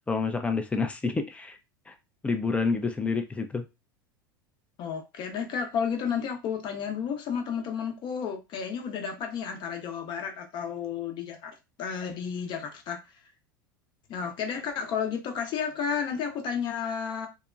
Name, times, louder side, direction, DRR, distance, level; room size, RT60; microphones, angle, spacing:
voice 1, 0.0-1.6 1.9-2.0 2.2-3.6, left 4 dB, 10° left, 0.5 m, -28 dB
voice 2, 4.8-13.0 14.1-17.3, left 7 dB, 45° left, 0.7 m, -32 dB
2.8 x 2.2 x 2.5 m
hypercardioid pair, 90°, 11 cm